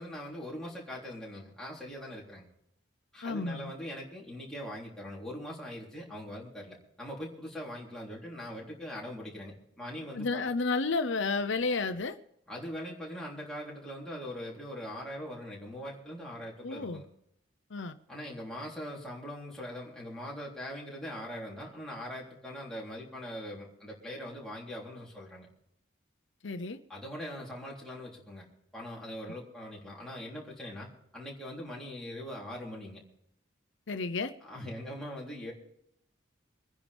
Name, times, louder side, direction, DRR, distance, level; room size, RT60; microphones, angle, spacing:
voice 1, 0.0-2.5 3.1-10.4 12.5-17.1 18.1-25.5 26.9-28.5 28.7-30.9 31.1-33.0 34.4-35.5, equal, 5° left, 3.6 m, -41 dB
voice 2, 3.2-3.7 10.2-12.2 16.6-17.0 17.7-18.0 26.4-26.8 33.9-34.3, left 3 dB, 75° left, 0.8 m, -31 dB
25.0 x 10.0 x 3.5 m
head